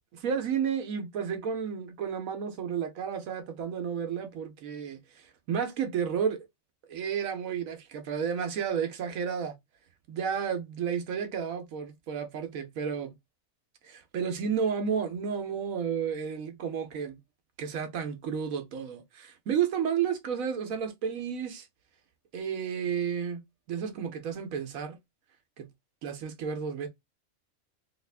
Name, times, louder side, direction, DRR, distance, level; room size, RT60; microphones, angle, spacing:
voice 1, 0.1-6.4 6.9-9.5 10.1-13.1 13.8-17.2 17.6-21.7 22.3-23.4 23.7-25.0 25.6-25.7 26.0-26.9, right 7 dB, 85° right, 1.2 m, -32 dB
3.4 x 2.4 x 3.3 m
omnidirectional pair, 1.4 m